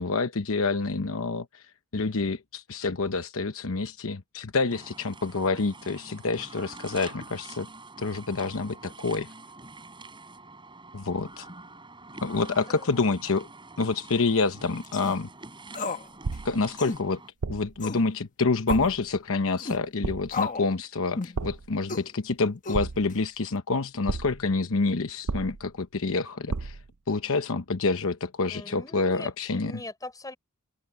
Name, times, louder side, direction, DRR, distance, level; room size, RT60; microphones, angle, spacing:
voice 1, 0.0-1.6 1.9-7.7 8.0-9.3 10.9-11.5 12.2-13.5 13.8-15.3 16.4-17.2 17.5-26.8 27.1-29.8, left 3 dB, 65° left, 1.0 m, -27 dB
sound 1, 4.7-17.3, right 3 dB, 20° right, 5.6 m, -46 dB
voice 2, 12.5-13.0 28.5-30.4, left 2 dB, 15° left, 4.1 m, -42 dB
sound 2, 14.8-15.2 15.7-16.1 16.3-16.4 16.8-17.0 17.8-18.1 18.7-18.9 19.6-19.8 20.3-20.7 21.2-21.4 21.9-22.1 22.6-23.1, left 4 dB, 35° left, 1.3 m, -33 dB
sound 3, 16.2-16.7 17.4-17.8 18.7-19.1 20.0-20.5 21.4-21.8 22.7-23.3 24.1-24.5 25.3-25.8 26.5-26.9, right 4 dB, 80° right, 0.7 m, -33 dB
head